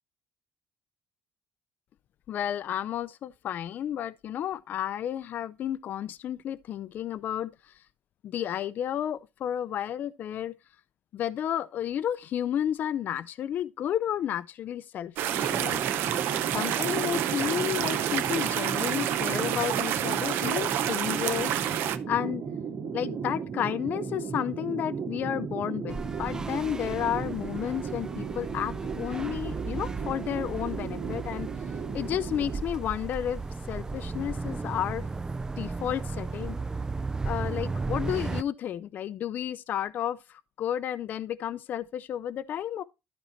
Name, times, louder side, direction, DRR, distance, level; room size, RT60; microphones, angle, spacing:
voice 1, 2.3-7.8 8.2-10.5 11.1-16.1 16.5-22.4 22.9-31.5 31.9-33.4 33.7-35.0 35.6-36.6 37.2-42.8, left 10 dB, 60° left, 0.4 m, -32 dB
sound 1, 15.2-22.0, right 11 dB, 80° right, 0.7 m, -29 dB
sound 2, 15.3-32.6, right 6 dB, 60° right, 2.1 m, -35 dB
sound 3, 25.9-38.4, right 3 dB, 20° right, 0.3 m, -35 dB
12.5 x 4.3 x 4.3 m
cardioid pair, 100°, 4 cm